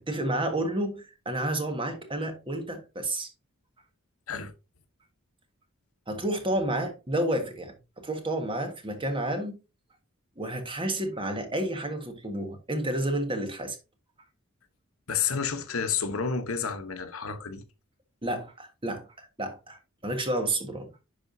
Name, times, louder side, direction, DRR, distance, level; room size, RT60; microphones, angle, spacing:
voice 1, 0.0-3.3 6.1-9.6 10.4-13.8 18.2-19.8 20.0-20.9, right 1 dB, 25° right, 1.6 m, -30 dB
voice 2, 15.1-17.6, left 6 dB, 80° left, 1.0 m, -30 dB
10.5 x 5.0 x 2.7 m
head